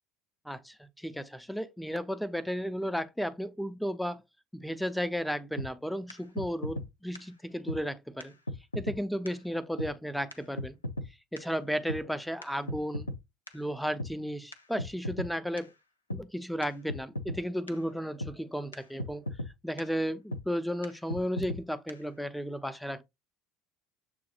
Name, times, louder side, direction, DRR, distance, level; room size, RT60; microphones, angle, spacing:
voice 1, 0.5-4.2 4.5-8.3 8.7-10.8 11.3-13.1 13.5-15.7 16.1-19.2 19.6-23.0, equal, ahead, 0.5 m, -34 dB
sound 1, 5.6-5.7 6.1-6.2 6.4-6.9 7.2-7.3 7.7-7.8 8.2-8.3 8.5-9.0 9.3-9.4 9.8-9.9 10.3-10.4 10.6-11.1 11.4-11.5 11.9-12.0 12.4-13.2 13.5-13.6 14.0-14.1 14.5-14.6 14.8-15.3 15.6-15.7 16.1-16.2 16.6-16.7 16.9-17.4 17.7-17.8 18.2-18.3 18.7-18.8 19.0-19.5 19.8-19.9 20.3-20.4 20.8-20.9 21.1-21.6 21.9-22.0, left 1 dB, 85° left, 0.4 m, -35 dB
6.8 x 2.3 x 2.8 m
figure-of-eight pair, 65°, 0 cm